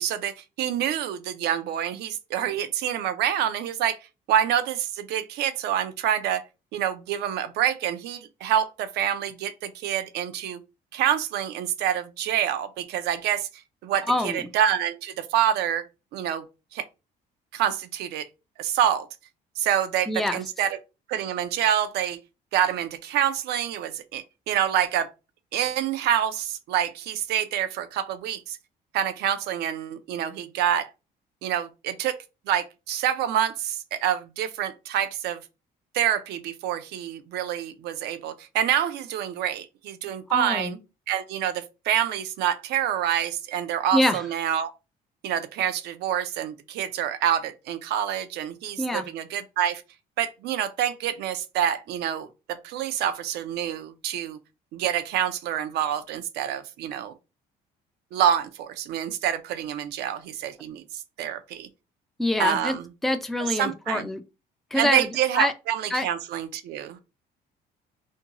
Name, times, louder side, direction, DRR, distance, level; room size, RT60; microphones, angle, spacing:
voice 1, 0.0-4.0 4.3-6.4 6.7-10.6 10.9-15.9 16.1-16.4 16.7-16.8 17.5-18.3 18.6-19.1 19.6-20.8 21.1-22.2 22.5-25.1 25.5-28.6 28.9-30.9 31.4-32.2 32.5-35.4 35.9-40.8 41.1-44.7 45.2-49.8 50.2-54.4 54.7-57.1 58.1-61.7 62.4-62.9 63.4-64.1 64.7-67.0, right 10 dB, 75° right, 0.5 m, -27 dB
voice 2, 14.1-14.4 20.1-20.4 40.3-40.8 43.9-44.2 48.8-49.1 62.2-62.7 63.0-64.2 64.7-65.1 65.4-65.5 65.9-66.1, left 1 dB, ahead, 0.3 m, -25 dB
2.6 x 2.2 x 2.8 m
cardioid pair, 110°, 17 cm